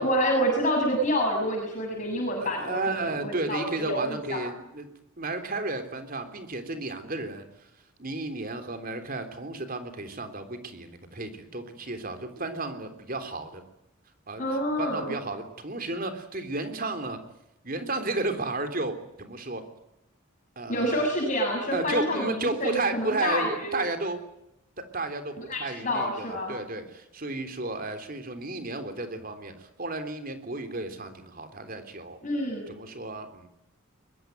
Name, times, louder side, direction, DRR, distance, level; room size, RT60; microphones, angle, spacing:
voice 1, 0.0-4.4 14.4-15.1 20.7-23.7 25.5-26.5 32.2-32.7, equal, 35° left, 1 dB, 7.1 m, -28 dB
voice 2, 2.4-4.9 5.2-7.7 8.0-13.6 14.3-17.2 17.6-19.6 20.6-21.1 21.7-24.2 24.8-32.2 32.7-33.5, right 2 dB, 40° right, 8 dB, 3.5 m, -33 dB
23.0 x 21.5 x 9.4 m, 0.86 s
head